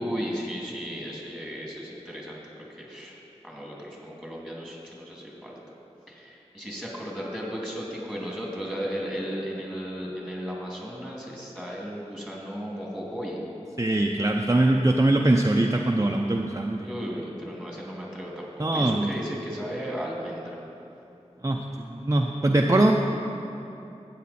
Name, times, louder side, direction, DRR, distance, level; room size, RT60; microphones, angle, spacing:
voice 1, 0.0-2.4 2.8-3.2 3.4-5.6 6.1-13.4 16.8-20.6, equal, 5° left, -3 dB, 2.4 m, -35 dB
voice 2, 13.8-16.9 18.6-19.1 21.4-21.6 21.9-22.9, right 2 dB, 25° right, 1 dB, 0.6 m, -22 dB
13.0 x 8.5 x 4.2 m, 2.8 s
wide cardioid pair, 55°, 12 cm